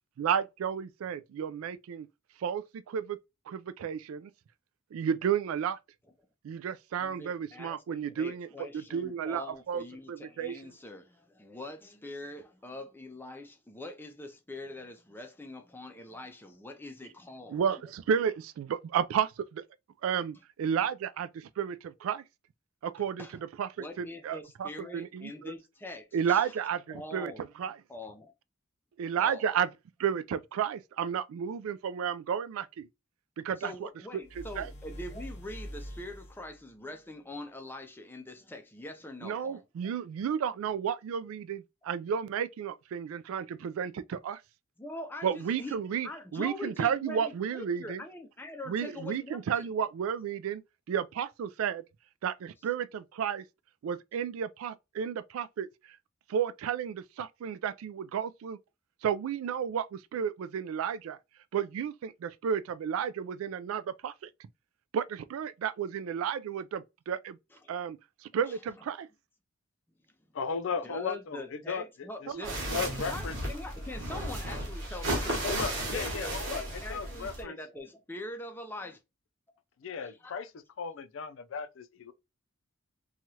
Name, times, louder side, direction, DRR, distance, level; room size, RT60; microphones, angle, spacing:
voice 1, 0.2-2.1 2.4-3.2 3.5-4.3 4.9-5.8 6.4-10.6 17.5-19.6 20.0-22.2 22.8-25.5 26.1-27.3 27.6-27.8 29.0-29.7 30.0-32.9 33.4-33.9 34.6-34.7 39.2-44.4 45.2-48.0 48.6-50.6 50.9-51.8 52.2-53.4 53.8-55.7 56.3-58.6 59.0-61.2 61.5-64.3 64.9-67.4 67.7-69.1 72.3-72.5, right 8 dB, 80° right, 0.3 m, -32 dB
voice 2, 7.0-17.6 23.2-23.3 23.8-26.5 26.9-27.4 27.9-28.3 29.2-29.5 33.6-39.6 44.8-45.8 46.0-49.7 67.6-67.7 70.8-75.5 75.9-79.0 80.0-80.4, left 1 dB, 10° left, 0.5 m, -43 dB
sound 1, 34.2-36.6, equal, 35° left, 0.8 m, -44 dB
voice 3, 70.3-72.3 72.7-73.4 75.4-76.6 76.9-77.6 79.8-80.5 80.8-82.1, left 5 dB, 65° left, 0.4 m, -36 dB
sound 2, 72.4-77.4, right 1 dB, 60° right, 1.1 m, -34 dB
3.0 x 2.3 x 2.7 m
head